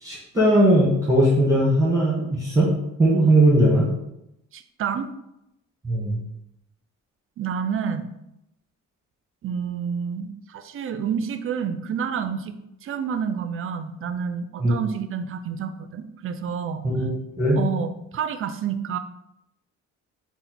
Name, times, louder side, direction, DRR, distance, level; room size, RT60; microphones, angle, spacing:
voice 1, 0.0-2.7 3.0-3.9 5.8-6.2 14.6-14.7 16.8-17.1 17.4-17.6, right 1 dB, 10° right, -6 dB, 1.2 m, -19 dB
voice 2, 4.5-5.1 7.4-8.1 9.4-12.5 12.8-16.8 17.6-19.0, right 7 dB, 45° right, 10 dB, 0.4 m, -29 dB
4.0 x 2.2 x 4.2 m, 0.84 s
cardioid pair, 90°, 30 cm